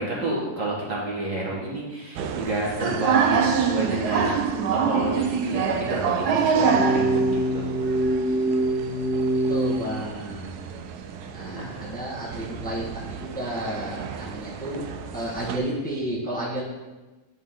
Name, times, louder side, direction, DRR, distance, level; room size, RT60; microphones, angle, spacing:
voice 1, 0.0-5.6 5.9-7.7 11.4-11.7, right 2 dB, 50° right, -4 dB, 1.8 m, -29 dB
sound 1, 2.2-15.6, right 6 dB, 75° right, 1.1 m, -27 dB
sound 2, 6.6-9.8, right 1 dB, 30° left, 0.9 m, -24 dB
voice 2, 9.5-10.6 11.3-14.8 15.1-16.6, right 1 dB, 5° left, -7 dB, 1.3 m, -32 dB
11.0 x 4.0 x 3.8 m, 1.1 s
omnidirectional pair, 1.7 m